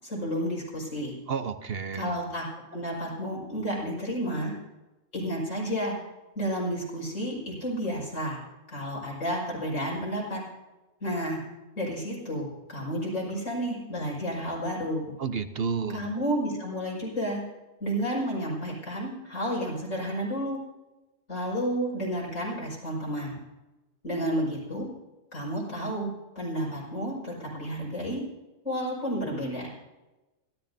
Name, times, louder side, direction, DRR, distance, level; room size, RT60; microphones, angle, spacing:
voice 1, 0.0-1.1 1.9-2.4 2.7-4.5 5.1-6.0 6.4-8.4 8.7-10.4 11.0-11.4 11.8-15.1 15.9-17.4 17.8-20.6 21.3-23.4 24.0-24.9 25.3-28.2 28.6-29.7, equal, 90° left, -3 dB, 6.1 m, -31 dB
voice 2, 1.3-2.1 15.2-16.1, right 6 dB, 55° right, 9 dB, 0.9 m, -31 dB
26.5 x 13.0 x 2.8 m, 1.1 s
omnidirectional pair, 1.3 m